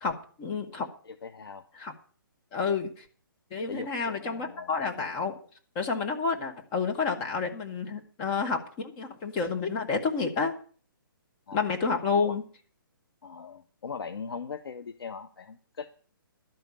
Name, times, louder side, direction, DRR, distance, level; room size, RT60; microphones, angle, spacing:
voice 1, 0.0-0.9 1.8-1.9 2.5-3.0 3.5-5.3 5.7-10.5 11.5-12.4, left 5 dB, 25° left, 4 dB, 1.4 m, -29 dB
voice 2, 1.0-1.7 3.7-5.0 11.5-11.6 12.2-12.4 13.2-15.9, left 5 dB, 80° left, 12 dB, 0.8 m, -40 dB
12.0 x 5.5 x 8.5 m, 0.42 s
hypercardioid pair, 160°, 12 cm